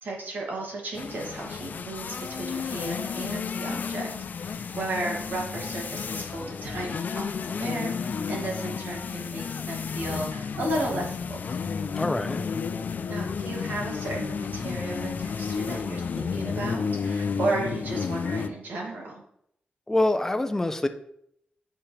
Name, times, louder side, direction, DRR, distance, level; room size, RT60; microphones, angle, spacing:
voice 1, 0.0-4.1 4.4-11.4 13.1-19.2, right 2 dB, 80° right, -1 dB, 2.3 m, -34 dB
sound 1, 0.9-18.5, left 5 dB, 60° left, 0.5 m, -32 dB
voice 2, 11.9-12.4 19.9-20.9, left 2 dB, 15° left, 8 dB, 0.6 m, -25 dB
8.5 x 7.1 x 3.3 m, 0.72 s
wide cardioid pair, 115°, 3 cm